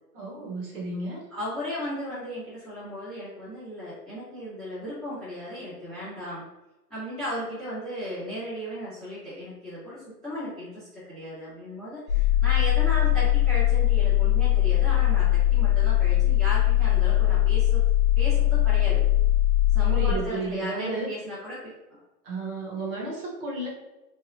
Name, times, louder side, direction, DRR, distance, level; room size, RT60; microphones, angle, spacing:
voice 1, 0.1-1.2 19.9-21.1 22.2-23.7, right 2 dB, 35° right, -3 dB, 1.0 m, -32 dB
voice 2, 1.3-6.4 6.9-17.8 18.1-19.0 19.7-22.0, equal, 5° left, -26 dB, 0.4 m, -36 dB
sound 1, 12.1-20.1, left 13 dB, 55° left, 0.6 m, -21 dB
3.2 x 2.5 x 2.6 m, 1.0 s
hypercardioid pair, 155°, 48 cm